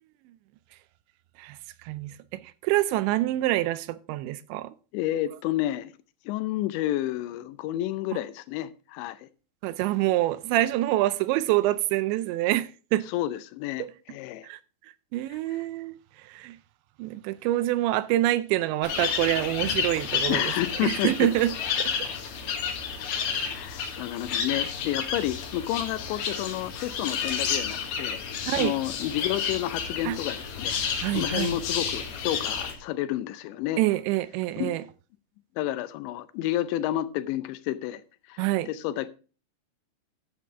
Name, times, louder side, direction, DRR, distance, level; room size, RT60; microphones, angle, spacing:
voice 1, 1.4-4.7 9.6-13.1 14.4-14.6 15.1-16.6 17.0-20.5 20.8-21.5 21.8-21.9 23.3-23.5 28.5-28.7 30.1-30.2 31.0-31.6 33.8-34.8 38.4-38.7, right 15 dB, 90° right, 2.9 m, -26 dB
voice 2, 4.9-5.9 6.3-9.3 13.1-14.5 20.3-21.3 23.5-33.8 34.6-34.8 35.6-38.0 38.3-39.1, left 14 dB, 85° left, 3.0 m, -30 dB
sound 1, 18.8-32.7, left 7 dB, 65° left, 3.3 m, -31 dB
11.0 x 7.7 x 3.6 m
omnidirectional pair, 5.1 m